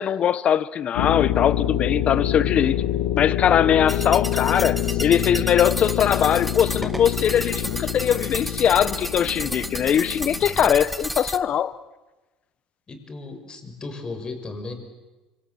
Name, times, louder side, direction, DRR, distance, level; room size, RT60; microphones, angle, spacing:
voice 1, 0.0-2.7 3.1-11.8, left 9 dB, 45° left, 1.2 m, -21 dB
sound 1, 0.9-10.4, left 12 dB, 80° left, 1.6 m, -26 dB
sound 2, 3.9-11.4, equal, ahead, 1.6 m, -32 dB
voice 2, 4.8-5.5 10.4-10.7 12.9-14.7, left 3 dB, 30° left, 6.0 m, -36 dB
25.5 x 25.5 x 7.8 m
hypercardioid pair, 80°, 3 cm